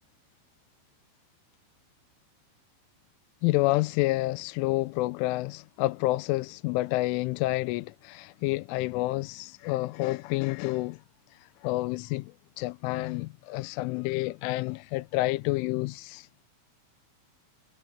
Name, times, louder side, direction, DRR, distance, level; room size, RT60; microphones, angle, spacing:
voice 1, 3.4-11.0 11.3-16.3, left 20 dB, 90° left, 3.1 m, -29 dB
omnidirectional pair, 5.5 m